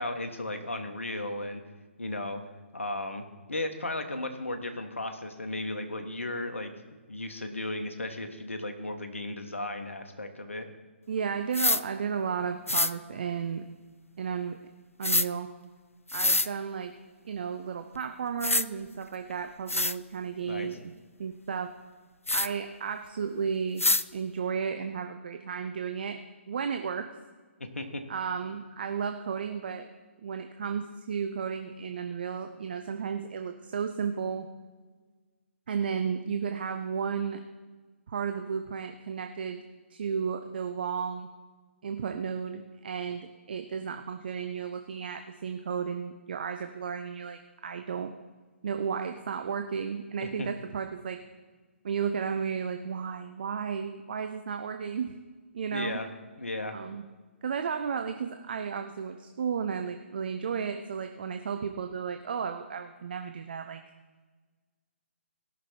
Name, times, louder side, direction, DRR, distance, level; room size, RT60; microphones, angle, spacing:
voice 1, 0.0-1.6 2.0-2.4 2.7-6.7 7.1-10.7 20.4-20.7 27.6-28.0 50.2-50.5 55.7-56.1 56.4-56.8, left 2 dB, 70° left, 6 dB, 1.4 m, -35 dB
voice 2, 11.1-13.6 14.2-14.6 15.0-15.5 16.1-16.9 17.2-20.9 21.2-21.7 22.3-23.8 24.1-26.2 26.5-27.1 28.1-29.9 30.2-34.5 35.7-37.4 38.1-39.6 39.9-41.3 41.8-48.1 48.6-51.2 51.8-55.2 55.5-56.0 56.7-57.0 57.4-63.8, right 6 dB, 45° right, 6 dB, 0.6 m, -33 dB
sound 1, 11.5-11.8 12.7-12.9 15.0-15.3 16.1-16.5 17.9-18.0 18.4-18.7 19.3-19.4 19.7-20.0 22.3-22.5 23.8-24.0, left 2 dB, 85° left, 0.4 m, -25 dB
17.5 x 6.2 x 4.4 m, 1.3 s
figure-of-eight pair, 135°, 7 cm